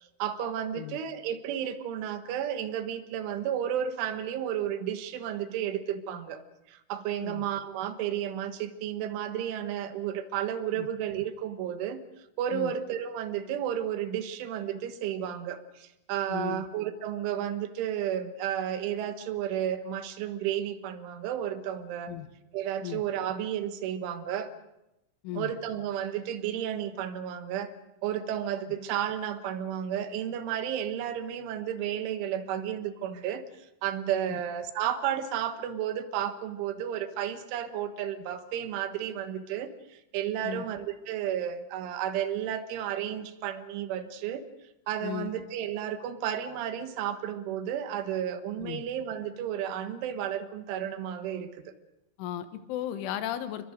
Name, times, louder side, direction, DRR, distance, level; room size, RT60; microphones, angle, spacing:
voice 1, 0.0-12.0 12.4-22.1 22.5-24.5 25.3-27.7 28.0-44.4 44.9-51.6, right 10 dB, 90° right, 10 dB, 3.7 m, -32 dB
voice 2, 16.3-16.7 22.1-22.3 22.8-23.0 25.2-25.5 34.3-34.4 40.4-40.7 45.0-45.3 48.6-48.8 52.2-53.7, left 11 dB, 85° left, 10 dB, 3.7 m, -35 dB
29.0 x 22.0 x 5.2 m, 0.93 s
omnidirectional pair, 5.4 m